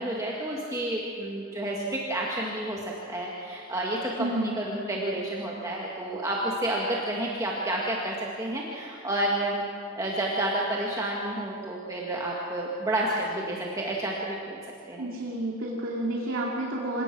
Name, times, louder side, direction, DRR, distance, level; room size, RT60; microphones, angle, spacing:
voice 1, 0.0-9.6 10.0-15.1, right 1 dB, 15° right, -3 dB, 1.9 m, -30 dB
voice 2, 4.2-4.5 15.0-17.0, right 1 dB, 70° right, -3 dB, 2.6 m, -30 dB
26.5 x 18.5 x 6.2 m, 2.4 s
head